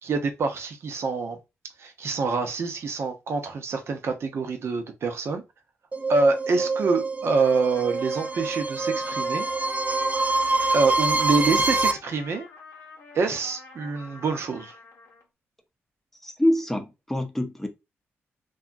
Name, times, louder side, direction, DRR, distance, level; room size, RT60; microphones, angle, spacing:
voice 1, 0.0-1.4 1.8-5.4 6.1-9.5 10.7-12.5 13.1-14.7, right 4 dB, 60° right, 0.7 m, -26 dB
sound 1, 5.9-11.9, right 3 dB, 25° right, 0.4 m, -25 dB
Trumpet, 7.4-15.3, left 3 dB, 70° left, 0.8 m, -45 dB
voice 2, 16.2-17.7, left 1 dB, 5° left, 0.7 m, -25 dB
2.8 x 2.3 x 2.5 m
cardioid pair, 65°, 5 cm